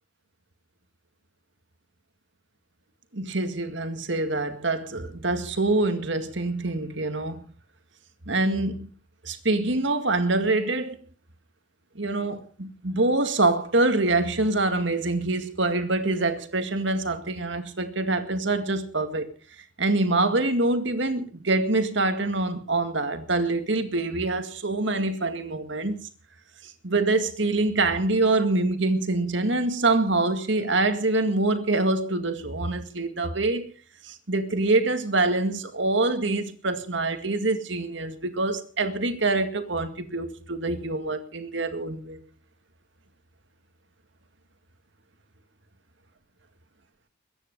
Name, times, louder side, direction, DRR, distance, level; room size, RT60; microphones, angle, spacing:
voice 1, 3.1-7.4 8.3-8.9 9.2-11.0 12.0-19.3 19.8-26.0 26.8-33.7 34.0-42.2, right 2 dB, 60° right, 2.1 m, -25 dB
22.0 x 10.0 x 5.3 m
head